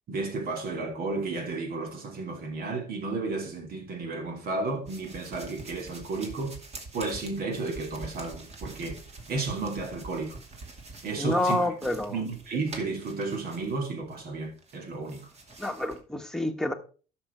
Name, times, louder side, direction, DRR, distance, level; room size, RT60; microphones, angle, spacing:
voice 1, 0.1-6.6 6.9-9.0 9.3-10.4 11.0-11.6 12.1-15.3, right 3 dB, 60° right, 3.0 m, -32 dB
sound 1, 4.9-14.2 14.6-16.0, right 3 dB, 40° right, 2.5 m, -45 dB
voice 2, 11.2-12.2 15.6-16.7, left 1 dB, 5° left, 1.4 m, -28 dB
11.5 x 6.3 x 4.5 m
cardioid pair, 110°, 17 cm